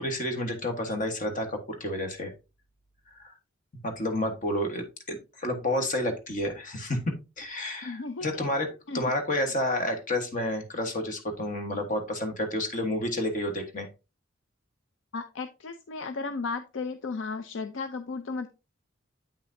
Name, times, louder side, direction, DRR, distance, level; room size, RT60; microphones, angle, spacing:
voice 1, 0.0-2.3 3.2-3.3 3.8-13.9, left 1 dB, 40° left, 5 dB, 1.3 m, -30 dB
voice 2, 7.8-8.4 8.9-9.1 15.1-18.5, left 4 dB, 65° left, 9 dB, 0.5 m, -35 dB
8.7 x 5.7 x 2.6 m, 0.28 s
head